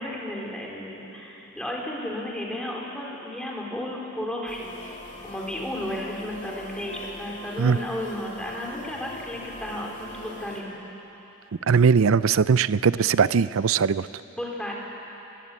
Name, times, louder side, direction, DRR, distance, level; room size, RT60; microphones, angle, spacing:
voice 1, 0.0-5.0 5.2-10.8 14.3-14.7, left 1 dB, 5° left, -2 dB, 3.8 m, -33 dB
sound 1, 4.5-10.6, left 1 dB, 35° left, 2.6 m, -42 dB
voice 2, 11.7-14.1, right 6 dB, 70° right, 17 dB, 0.5 m, -20 dB
24.0 x 18.0 x 8.3 m, 3.0 s
head